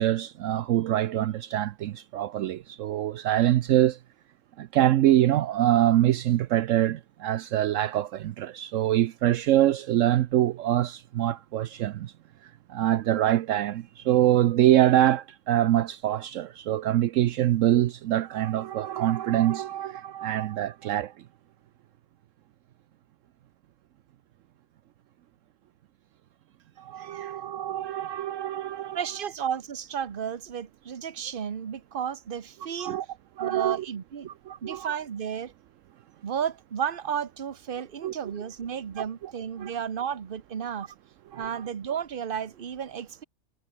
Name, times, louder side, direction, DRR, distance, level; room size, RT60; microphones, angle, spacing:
voice 1, 0.0-4.0 4.6-12.1 12.7-21.1 26.8-29.0 32.8-33.1 33.4-33.8 34.3-34.9 38.0-38.1 39.6-39.7 41.3-41.5, right 13 dB, 75° right, 1.0 m, -24 dB
voice 2, 27.0-27.4 28.9-33.0 33.4-34.3 34.6-35.5 36.2-40.9 41.3-43.2, right 8 dB, 45° right, 1.1 m, -33 dB
omnidirectional pair, 1.4 m